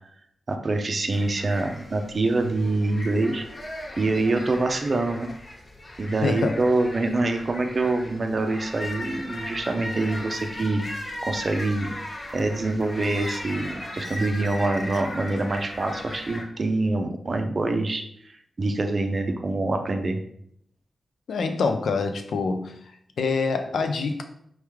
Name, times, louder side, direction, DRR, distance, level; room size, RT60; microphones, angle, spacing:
voice 1, 0.5-3.4 4.0-5.3 6.0-10.8 11.2-11.9 12.3-20.2, right 2 dB, 35° right, 5 dB, 0.5 m, -25 dB
sound 1, 1.1-16.4, left 1 dB, 30° left, 0.6 m, -37 dB
voice 2, 6.2-6.6 21.3-22.7 23.2-24.2, left 4 dB, 85° left, 6 dB, 0.5 m, -25 dB
4.6 x 3.1 x 3.5 m, 0.70 s
wide cardioid pair, 165°, 0 cm